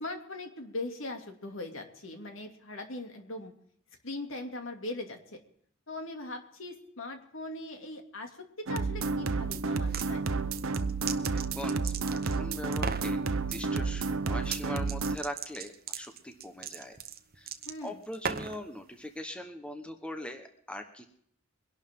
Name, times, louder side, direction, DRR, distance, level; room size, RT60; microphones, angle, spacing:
voice 1, 0.0-3.5 4.0-5.4 5.9-10.3 17.6-18.0, left 2 dB, 70° left, 4 dB, 2.6 m, -40 dB
sound 1, 8.7-15.2, right 4 dB, 85° right, 0.8 m, -31 dB
sound 2, 9.7-10.1 10.6-12.4 12.7-13.1 14.4-14.6 14.9-18.6, right 6 dB, 50° right, 1.0 m, -37 dB
voice 2, 11.3-17.0 17.4-17.5 17.8-21.1, left 1 dB, 5° left, 5 dB, 1.1 m, -41 dB
23.0 x 11.5 x 3.7 m, 0.66 s
head